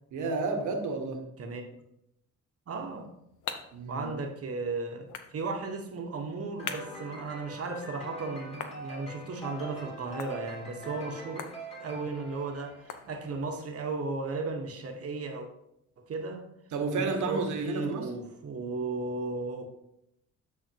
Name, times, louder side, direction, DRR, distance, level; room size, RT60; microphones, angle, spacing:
voice 1, 0.1-1.2 3.7-4.0 16.7-18.1, right 3 dB, 75° right, 4 dB, 1.5 m, -31 dB
sound 1, 2.7-13.6, left 7 dB, 80° left, 0.9 m, -46 dB
voice 2, 2.7-3.1 3.9-11.5 11.8-15.5 16.0-16.5 16.9-19.7, right 3 dB, 50° right, 4 dB, 1.3 m, -35 dB
sound 2, 6.6-13.2, right 1 dB, 20° left, 2.6 m, -44 dB
13.0 x 4.3 x 2.9 m, 0.80 s
cardioid pair, 90°, 30 cm